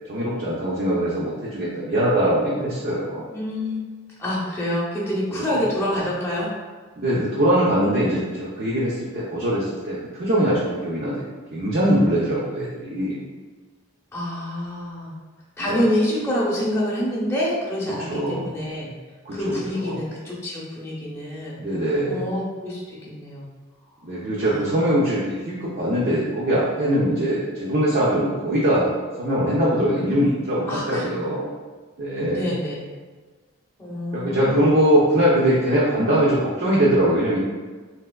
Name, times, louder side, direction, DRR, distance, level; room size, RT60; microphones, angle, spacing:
voice 1, 0.1-3.2 5.3-5.6 7.0-11.2 11.5-13.2 15.7-15.8 18.1-18.5 19.3-20.0 21.6-22.2 24.0-28.9 29.2-31.5 32.0-32.5 34.1-37.4, equal, 50° right, -7 dB, 0.5 m, -22 dB
voice 2, 3.3-3.8 4.2-6.5 14.1-15.1 15.6-18.9 19.3-21.6 22.1-23.5 24.4-24.8 30.7-31.2 32.3-32.9 33.8-34.8, left 1 dB, 10° left, -6 dB, 0.7 m, -27 dB
3.4 x 2.8 x 2.2 m, 1.4 s
head